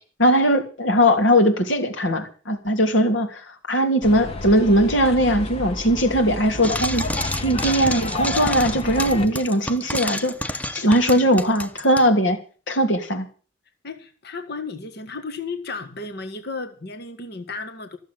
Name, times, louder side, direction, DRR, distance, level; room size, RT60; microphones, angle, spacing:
voice 1, 0.2-10.3 10.7-12.4 12.7-13.3, equal, 75° left, 5 dB, 2.9 m, -20 dB
sound 1, 4.0-9.3, left 2 dB, 30° left, 1.7 m, -31 dB
Frying (food), 6.6-12.1, left 1 dB, 10° left, 0.9 m, -29 dB
voice 2, 13.8-18.0, left 3 dB, 60° left, 6 dB, 1.7 m, -34 dB
14.5 x 7.4 x 9.2 m, 0.39 s
head